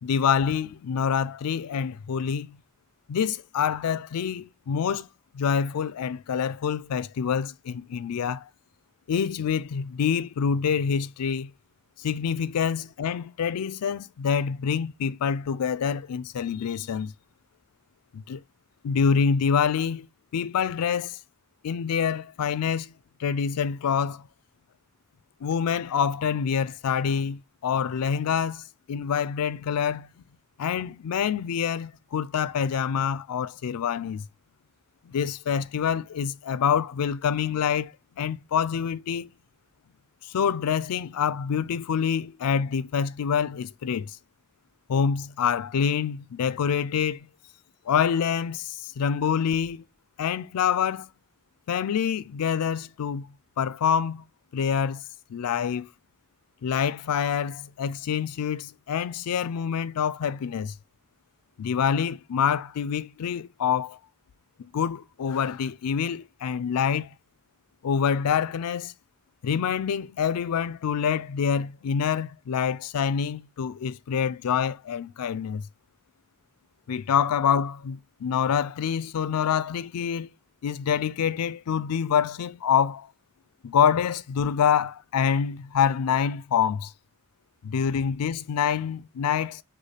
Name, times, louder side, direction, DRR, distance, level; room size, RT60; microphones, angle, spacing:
voice 1, 0.0-2.6 3.1-5.1 5.3-8.5 9.1-11.5 12.0-17.1 18.1-18.4 18.8-20.1 20.3-21.2 21.6-22.9 23.2-24.3 25.4-30.1 30.6-34.2 35.1-39.3 40.3-44.2 44.9-47.3 47.9-49.8 50.2-51.1 51.7-53.3 53.6-54.2 54.5-55.0 55.3-55.9 56.6-60.7 61.6-64.0 64.6-67.1 67.8-68.9 69.4-75.7 76.9-80.3 80.6-83.1 83.6-86.9 87.6-89.6, left 7 dB, 85° left, 0.4 m, -26 dB
6.3 x 2.3 x 3.3 m
head